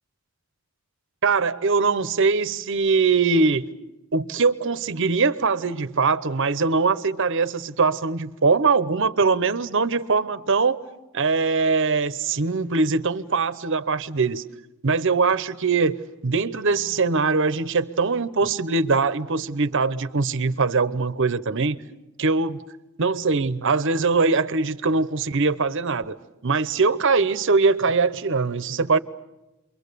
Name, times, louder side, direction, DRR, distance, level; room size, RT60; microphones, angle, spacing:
voice 1, 1.2-3.7 4.1-10.8 11.1-14.4 14.8-21.8 22.2-22.6 23.0-26.2 26.4-29.0, right 4 dB, 60° right, 0.8 m, -22 dB
29.5 x 23.5 x 6.8 m
head